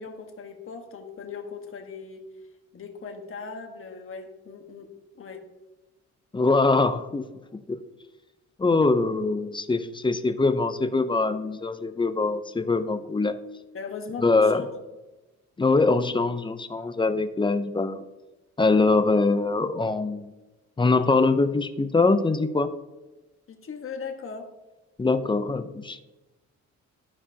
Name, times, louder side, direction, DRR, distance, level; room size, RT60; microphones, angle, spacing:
voice 1, 0.0-2.2 2.7-5.5 13.7-14.7 23.5-24.5, left 5 dB, 45° left, 4 dB, 1.3 m, -38 dB
voice 2, 6.3-7.3 7.7-7.8 8.6-13.4 14.2-14.6 15.6-18.0 18.6-20.3 20.8-22.7 25.0-26.0, left 3 dB, 15° left, 10 dB, 0.5 m, -23 dB
14.0 x 4.8 x 2.8 m, 1.1 s
cardioid pair, 90°, 30 cm